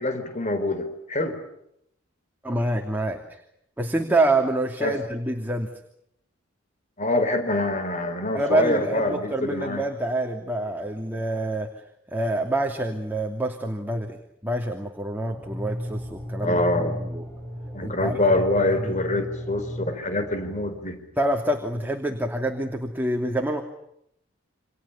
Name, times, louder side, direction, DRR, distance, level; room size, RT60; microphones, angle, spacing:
voice 1, 0.0-1.4 4.8-5.0 7.0-9.8 16.4-17.0 17.7-21.0, left 2 dB, 35° left, 8 dB, 4.1 m, -25 dB
voice 2, 2.4-3.4 3.8-5.7 8.3-11.7 12.1-14.2 14.4-17.2 17.8-18.2 18.8-18.9 21.2-23.6, right 1 dB, 10° right, 2 dB, 2.8 m, -26 dB
sound 1, 15.3-21.3, equal, 10° left, 6.1 m, -35 dB
29.0 x 27.5 x 7.2 m, 0.78 s
head